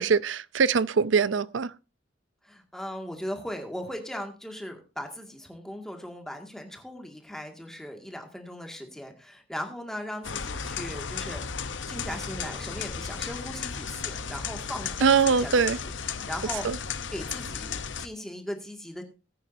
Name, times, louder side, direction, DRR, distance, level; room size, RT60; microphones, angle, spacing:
voice 1, 0.0-1.7 15.0-15.8 16.6-16.8, right 5 dB, 80° right, 0.5 m, -22 dB
voice 2, 2.4-11.4 11.9-15.5 15.8-15.9 16.3-19.0, equal, 5° left, 2.0 m, -38 dB
sound 1, 10.2-18.1, left 6 dB, 75° left, 0.9 m, -34 dB
19.5 x 9.1 x 2.7 m
head